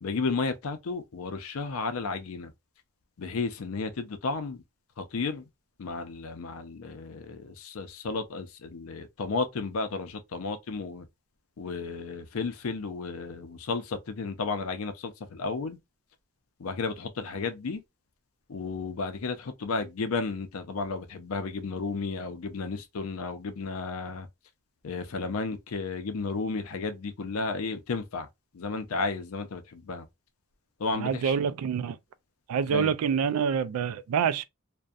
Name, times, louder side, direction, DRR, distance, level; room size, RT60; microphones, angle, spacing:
voice 1, 0.0-2.5 3.2-4.6 5.0-5.4 5.8-11.0 11.6-15.8 16.6-17.8 18.5-24.3 24.8-28.3 28.5-30.1 30.8-31.3 32.7-32.9, left 4 dB, 75° left, 0.5 m, -33 dB
voice 2, 30.9-32.0 32.5-34.4, right 7 dB, 85° right, 0.3 m, -26 dB
2.6 x 2.1 x 2.3 m
head